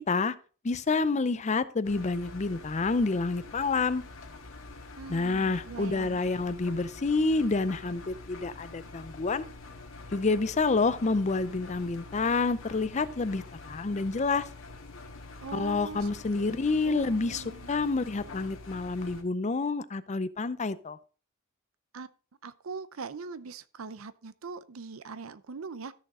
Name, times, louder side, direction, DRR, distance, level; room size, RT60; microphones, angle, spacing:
voice 1, 0.6-4.0 5.1-9.4 10.1-14.5 15.5-21.0, left 3 dB, 35° left, 0.5 m, -28 dB
Engine, 1.8-19.2, left 3 dB, 75° left, 1.7 m, -46 dB
voice 2, 5.0-6.2 15.4-16.1 16.4-16.6 16.8-17.8 21.9-22.1 22.4-25.9, right 4 dB, 75° right, 0.6 m, -41 dB
13.5 x 6.3 x 3.7 m
head